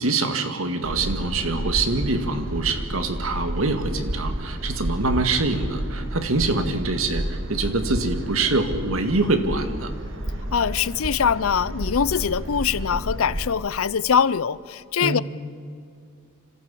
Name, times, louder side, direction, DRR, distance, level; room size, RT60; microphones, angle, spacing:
voice 1, 0.0-9.9 15.0-15.2, right 3 dB, 80° right, 7 dB, 2.0 m, -25 dB
sound 1, 0.8-13.5, right 1 dB, 65° right, 2.0 m, -31 dB
voice 2, 10.5-15.2, left 7 dB, 80° left, 19 dB, 0.6 m, -23 dB
26.0 x 15.0 x 8.6 m, 2.3 s
head